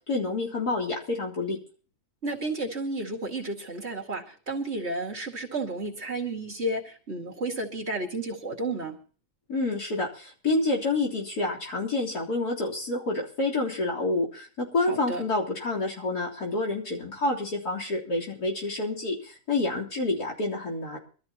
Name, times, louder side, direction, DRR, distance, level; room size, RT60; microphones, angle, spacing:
voice 1, 0.1-1.6 9.5-21.0, left 2 dB, 85° left, -1 dB, 4.2 m, -28 dB
voice 2, 2.2-9.0 14.9-15.2, right 2 dB, 45° right, -1 dB, 2.5 m, -32 dB
24.5 x 13.5 x 2.9 m, 0.40 s
omnidirectional pair, 1.6 m